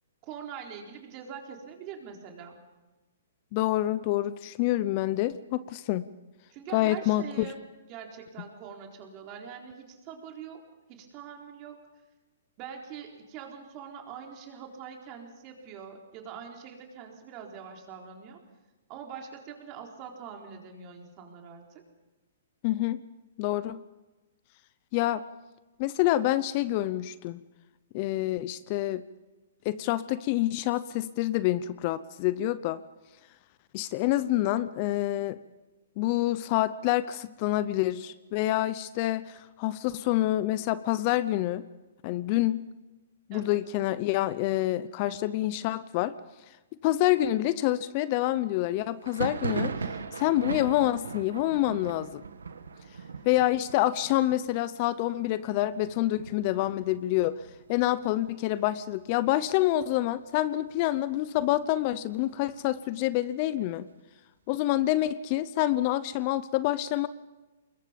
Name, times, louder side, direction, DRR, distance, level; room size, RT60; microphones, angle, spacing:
voice 1, 0.2-2.6 6.5-7.6 7.9-10.6 10.9-11.8 12.6-18.4 18.9-21.8 43.3-43.6, right 7 dB, 35° right, 2 dB, 4.1 m, -43 dB
voice 2, 3.5-6.0 6.7-7.5 22.6-23.0 23.4-23.8 24.9-25.2 25.8-27.4 27.9-29.0 29.6-32.8 33.7-35.4 36.0-41.6 42.0-42.6 43.3-46.1 46.8-49.7 50.2-52.2 53.2-57.3 57.7-63.9 64.5-67.1, left 15 dB, 40° left, 16 dB, 0.7 m, -27 dB
Thunder, 49.0-58.5 58.8-59.5 59.7-60.7 61.1-62.8, right 5 dB, 90° right, 1.6 m, -39 dB
25.0 x 21.5 x 5.3 m, 1.1 s
hypercardioid pair, 140°, 0 cm